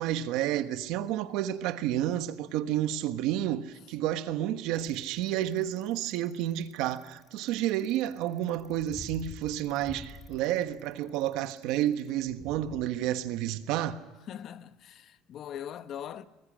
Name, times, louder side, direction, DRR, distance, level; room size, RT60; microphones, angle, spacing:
voice 1, 0.0-14.0, right 12 dB, 70° right, 1.4 m, -30 dB
Bicycle, 4.7-12.8, left 4 dB, 20° left, 2.4 m, -48 dB
voice 2, 14.3-16.3, left 9 dB, 40° left, 0.9 m, -41 dB
24.5 x 20.5 x 6.5 m
cardioid pair, 155°, 0 cm